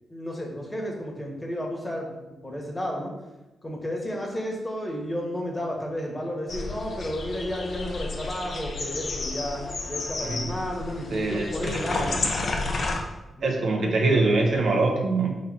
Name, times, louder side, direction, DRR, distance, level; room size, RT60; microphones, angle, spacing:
voice 1, 0.1-3.1 3.6-12.2 13.4-13.6, equal, 20° left, -1 dB, 1.3 m, -32 dB
sound 1, 6.5-13.0, left 3 dB, 60° left, 0.7 m, -31 dB
voice 2, 11.1-11.8 13.4-15.4, right 3 dB, 70° right, 1 dB, 0.8 m, -24 dB
4.0 x 3.2 x 4.1 m, 1.0 s
cardioid pair, 60°, 0 cm